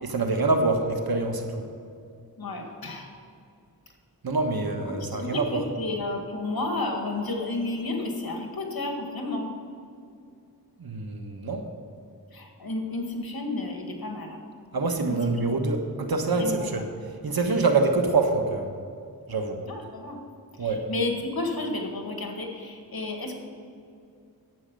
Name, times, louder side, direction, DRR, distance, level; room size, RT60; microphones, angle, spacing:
voice 1, 0.0-1.6 4.2-5.6 10.8-11.7 14.7-16.9 17.2-18.7 19.3-19.6 20.6-20.9, right 3 dB, 70° right, 4 dB, 1.4 m, -25 dB
voice 2, 2.4-3.1 4.8-9.5 12.3-14.4 15.1-15.2 15.5-15.6 16.4-16.7 19.6-20.2 20.6-23.3, left 2 dB, 65° left, 2 dB, 1.9 m, -31 dB
11.0 x 8.2 x 5.5 m, 2.5 s
cardioid pair, 45°, 38 cm